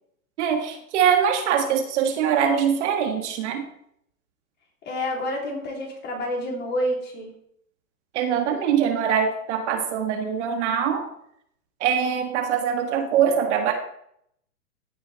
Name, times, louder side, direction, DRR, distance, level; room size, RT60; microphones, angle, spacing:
voice 1, 0.4-3.7 8.1-11.1 11.8-13.7, right 8 dB, 50° right, 4 dB, 1.9 m, -23 dB
voice 2, 4.8-7.3, equal, 20° left, 0 dB, 3.1 m, -28 dB
15.5 x 5.4 x 4.1 m, 0.71 s
hypercardioid pair, 135°, 45 cm